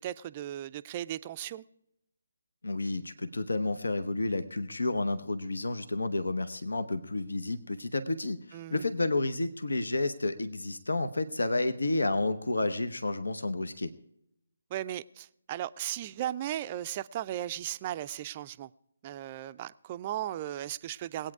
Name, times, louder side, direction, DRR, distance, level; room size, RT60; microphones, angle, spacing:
voice 1, 0.0-1.6 8.5-8.9 14.7-18.7 19.0-21.3, right 12 dB, 25° right, 14 dB, 0.4 m, -36 dB
voice 2, 2.6-13.9, left 2 dB, 75° left, 11 dB, 0.9 m, -31 dB
20.5 x 8.9 x 4.7 m, 0.80 s
figure-of-eight pair, 145°, 0 cm